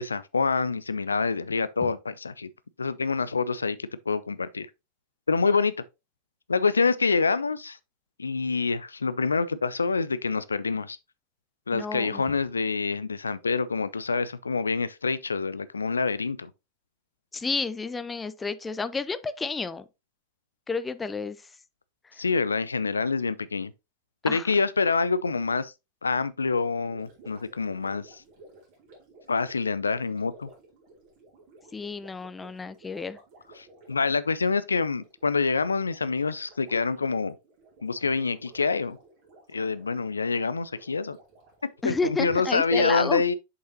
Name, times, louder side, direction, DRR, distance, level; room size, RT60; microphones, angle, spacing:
voice 1, 0.0-2.5 2.8-4.7 5.3-5.7 6.5-7.8 8.2-11.0 11.7-16.5 22.2-23.7 24.2-25.7 26.0-28.2 29.3-30.5 33.6-37.3 37.8-39.0 39.5-41.2 41.8-43.3, left 4 dB, 75° left, 0.3 m, -26 dB
voice 2, 11.7-12.2 17.3-19.8 20.7-21.4 24.3-24.5 31.7-33.2 41.8-43.2, left 4 dB, 15° left, 0.5 m, -31 dB
Gurgling, 26.8-42.1, right 2 dB, 45° right, 2.8 m, -54 dB
6.6 x 5.4 x 2.8 m
figure-of-eight pair, 90°, 0 cm